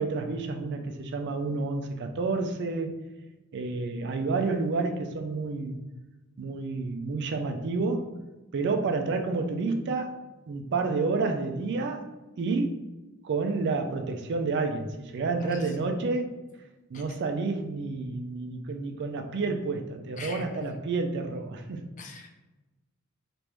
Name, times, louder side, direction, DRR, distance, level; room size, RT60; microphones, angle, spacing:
voice 1, 0.0-2.9 3.5-5.8 6.4-8.1 8.5-10.1 10.5-12.1 12.4-12.8 13.2-16.3 16.9-21.8, right 3 dB, 55° right, 5 dB, 0.4 m, -29 dB
voice 2, 15.4-15.8 16.9-17.0 20.2-20.6 22.0-22.3, left 3 dB, 35° left, 2 dB, 0.5 m, -41 dB
3.3 x 2.5 x 3.0 m, 1.1 s
head